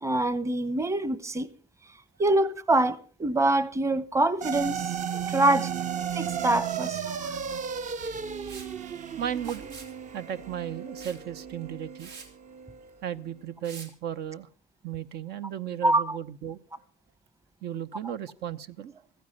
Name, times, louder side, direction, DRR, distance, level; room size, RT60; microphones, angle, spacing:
voice 1, 0.0-1.5 2.2-5.0 5.3-5.7 6.1-7.3 15.8-16.2, right 2 dB, 15° right, 1.0 m, -25 dB
sound 1, 4.4-12.9, right 8 dB, 50° right, 1.0 m, -34 dB
Liquid, 8.5-8.7 9.4-9.9 11.0-11.2 11.6-11.7 12.0-12.3 13.6-13.9, right 4 dB, 90° right, 3.3 m, -45 dB
voice 2, 9.2-9.7 10.1-12.1 13.0-14.5 14.8-16.6 17.6-18.9, right 10 dB, 75° right, 0.9 m, -35 dB
15.0 x 15.0 x 5.4 m
cardioid pair, 110°, 17 cm